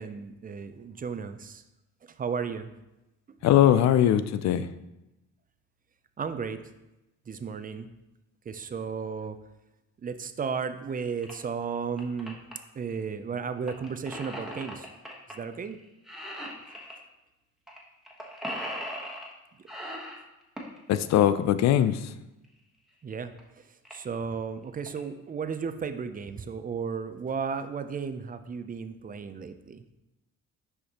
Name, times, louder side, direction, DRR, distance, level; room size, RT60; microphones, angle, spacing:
voice 1, 0.0-1.6 2.2-2.7 6.2-6.6 7.3-7.9 8.5-9.4 10.0-12.4 12.8-14.9 15.4-15.8 23.0-23.3 23.9-29.8, right 6 dB, 30° right, 10 dB, 0.5 m, -34 dB
voice 2, 3.4-4.7 20.9-22.1, left 11 dB, 65° left, 13 dB, 0.5 m, -21 dB
sound 1, 11.2-11.3 11.8-12.5 13.7-15.3 15.6-15.8 16.1-17.0 17.7-17.8 18.1-19.3 19.7-20.8 22.4-22.5 23.1-23.2 23.4-23.5 23.9-24.1 24.6-25.0, equal, ahead, 1.2 m, -38 dB
6.4 x 5.1 x 2.9 m, 0.95 s
cardioid pair, 90°, 30 cm